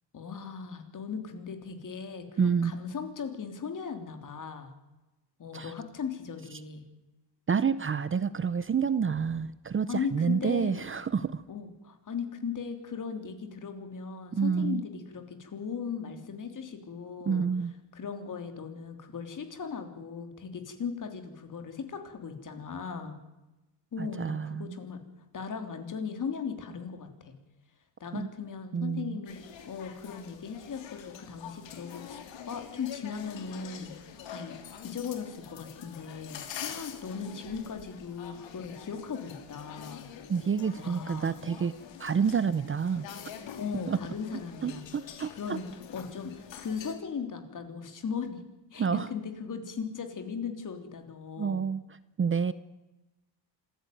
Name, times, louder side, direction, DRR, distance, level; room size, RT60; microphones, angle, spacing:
voice 1, 0.1-4.7 5.4-6.8 9.9-10.8 11.5-17.5 17.9-23.2 23.9-25.0 25.3-27.3 28.0-29.4 29.7-33.9 34.3-34.6 34.8-40.1 40.8-41.4 43.6-48.4 48.7-51.7, left 6 dB, 45° left, 7 dB, 3.4 m, -38 dB
voice 2, 2.4-2.7 5.5-5.7 7.5-11.4 14.3-14.8 17.3-17.7 24.0-24.8 28.1-28.3 28.7-29.2 40.3-41.7 42.0-43.0 43.9-44.0 44.6-45.6 48.8-49.1 51.4-51.8 52.2-52.5, right 6 dB, 30° right, 15 dB, 0.7 m, -28 dB
sound 1, 29.3-47.0, left 8 dB, 90° left, 3.1 m, -46 dB
26.0 x 15.0 x 9.3 m, 1.0 s
cardioid pair, 135°, 44 cm